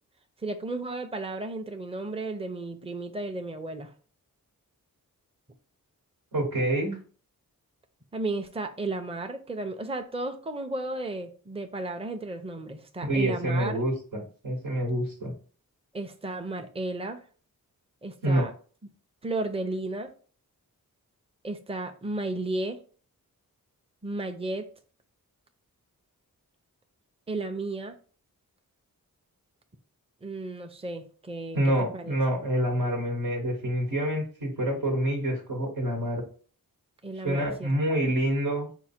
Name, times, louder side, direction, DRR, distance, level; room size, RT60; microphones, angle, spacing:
voice 1, 0.4-3.9 8.1-13.8 15.9-17.2 18.0-18.5 19.2-20.1 21.4-22.8 24.0-24.6 27.3-27.9 30.2-32.2 37.0-37.8, right 2 dB, 15° right, 6 dB, 0.6 m, -33 dB
voice 2, 6.3-7.0 13.0-15.3 18.2-18.5 31.5-36.2 37.2-38.7, right 1 dB, 80° right, -1 dB, 1.4 m, -27 dB
4.7 x 2.2 x 4.3 m, 0.41 s
cardioid pair, 50°, 36 cm